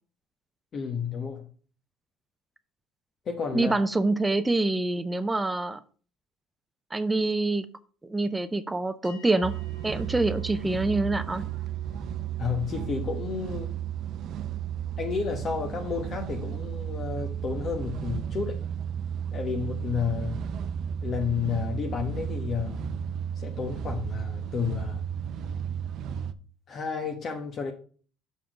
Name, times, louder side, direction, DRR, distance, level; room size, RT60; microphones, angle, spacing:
voice 1, 0.7-1.5 3.3-3.8 12.4-13.7 15.0-18.6 19.3-20.5 21.0-22.9 23.4-25.0 26.7-27.7, left 6 dB, 40° left, 1.1 m, -31 dB
voice 2, 3.5-5.8 6.9-7.7 8.0-9.5 9.8-11.4, right 2 dB, 10° right, 0.6 m, -26 dB
sound 1, 9.0-19.6, right 7 dB, 70° left, 3.2 m, -53 dB
sound 2, 9.4-26.3, right 8 dB, 55° right, 0.6 m, -33 dB
6.4 x 5.7 x 5.1 m
cardioid pair, 120°, 0 cm